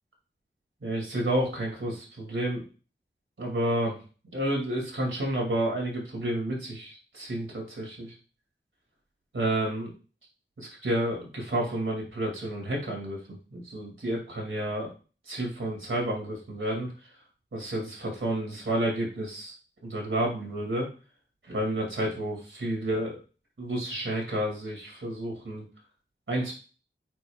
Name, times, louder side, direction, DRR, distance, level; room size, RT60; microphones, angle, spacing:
voice 1, 0.8-2.6 3.4-4.0 4.3-8.1 9.3-9.9 10.6-13.2 13.5-14.9 15.3-16.9 17.5-19.5 19.8-20.9 21.4-23.2 23.6-25.6 26.3-26.5, right 1 dB, 85° right, -1 dB, 2.4 m, -30 dB
9.0 x 5.3 x 2.3 m, 0.35 s
wide cardioid pair, 45°, 20 cm